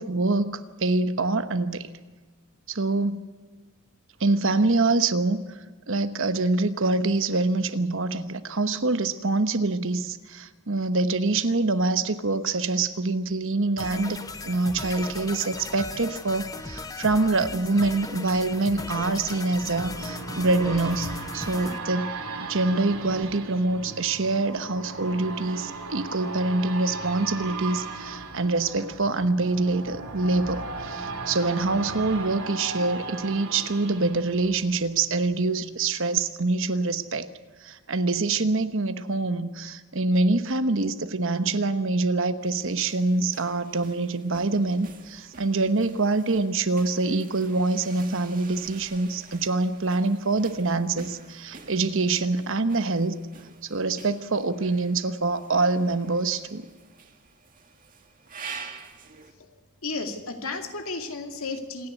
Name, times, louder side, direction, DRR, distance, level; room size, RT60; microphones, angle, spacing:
voice 1, 0.0-1.9 2.7-3.2 4.2-5.5 5.9-14.2 14.4-37.3 37.6-53.2 53.6-56.6, right 3 dB, 60° right, 11 dB, 1.1 m, -25 dB
sound 1, 13.8-21.8, left 3 dB, 15° left, 0.8 m, -37 dB
sound 2, 17.6-35.3 35.7-35.8, right 3 dB, 75° right, 2.9 m, -37 dB
sound 3, 42.4-59.3, right 5 dB, 40° right, 1.8 m, -47 dB
voice 2, 59.8-61.9, left 3 dB, 70° left, 5 dB, 2.3 m, -33 dB
27.0 x 10.5 x 9.5 m, 1.3 s
head